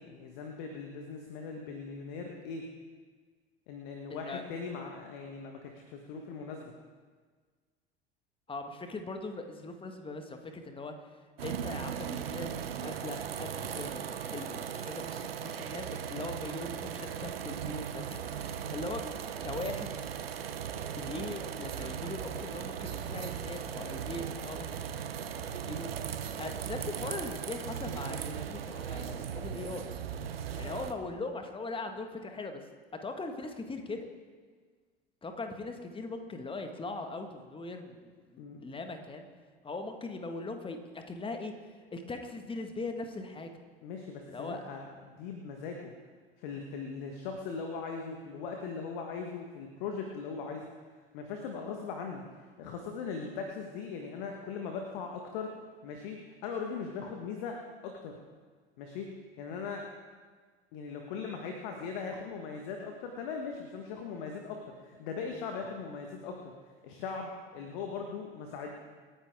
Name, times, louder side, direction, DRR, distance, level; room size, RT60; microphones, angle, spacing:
voice 1, 0.0-2.6 3.7-6.7 38.4-38.7 43.8-45.9 46.4-50.6 51.1-52.2 52.6-55.5 55.8-57.6 57.8-58.2 58.8-59.8 60.7-66.5 66.8-68.7, left 5 dB, 55° left, 3 dB, 1.6 m, -39 dB
voice 2, 4.1-4.4 8.5-10.9 11.4-19.9 20.9-25.9 26.4-29.9 30.5-32.6 33.0-34.1 35.2-39.3 39.6-43.5 44.3-44.6, left 3 dB, 15° left, 5 dB, 1.7 m, -40 dB
sound 1, 11.4-30.9, right 8 dB, 70° right, 0.9 m, -38 dB
27.0 x 10.0 x 3.7 m, 1.5 s
figure-of-eight pair, 75°, 31 cm